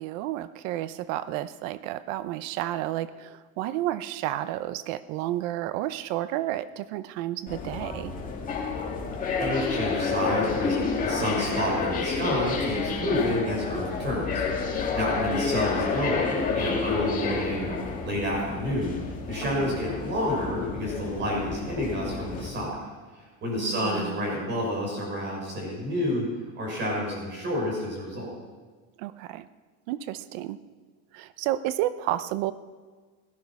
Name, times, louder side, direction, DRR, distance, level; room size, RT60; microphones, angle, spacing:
voice 1, 0.0-8.1 15.1-15.9 19.4-19.8 23.5-24.2 29.0-29.5 29.9-30.6 31.1-32.5, right 14 dB, 85° right, 15 dB, 0.8 m, -31 dB
sound 1, 7.5-22.5, left 4 dB, 20° left, 2.1 m, -30 dB
voice 2, 9.4-10.8 11.0-18.9 19.3-22.7 23.4-26.3 26.5-28.3, left 1 dB, 30° right, -1 dB, 6.2 m, -29 dB
17.0 x 13.5 x 5.8 m, 1.4 s
cardioid pair, 170°, 37 cm